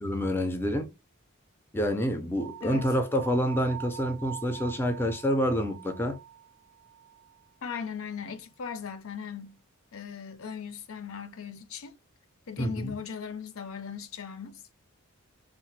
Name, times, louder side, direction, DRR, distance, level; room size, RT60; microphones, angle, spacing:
voice 1, 0.0-0.9 1.7-6.2 12.6-12.9, equal, 10° left, 0.4 m, -28 dB
sound 1, 2.4-7.5, right 12 dB, 85° right, 0.6 m, -45 dB
voice 2, 7.6-9.6 9.9-12.0 12.5-14.6, left 6 dB, 70° left, 0.5 m, -38 dB
2.8 x 2.0 x 3.1 m
head